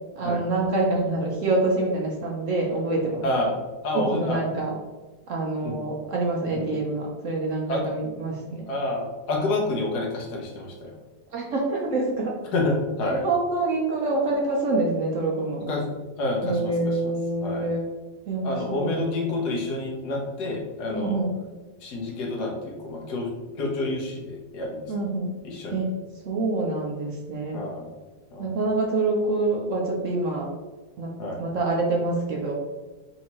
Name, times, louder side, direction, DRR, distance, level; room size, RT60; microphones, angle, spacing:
voice 1, 0.2-3.3 3.9-4.8 5.3-8.6 11.3-12.4 13.1-15.7 16.4-17.8 18.3-19.0 20.9-21.3 24.9-25.3 25.7-26.0 26.3-27.6 28.4-30.5 31.0-31.1 31.4-32.5, right 2 dB, 60° right, -1 dB, 0.9 m, -26 dB
voice 2, 3.2-3.5 3.8-4.4 5.6-5.8 6.5-6.6 7.7-7.8 8.7-10.9 12.5-13.2 15.7-17.1 17.4-17.7 18.4-21.2 21.8-23.3 23.6-24.8 25.4-25.8 27.5-27.9 28.3-28.5 31.2-31.4, left 2 dB, 75° left, -1 dB, 1.4 m, -28 dB
5.4 x 2.7 x 2.9 m, 1.2 s
omnidirectional pair, 1.8 m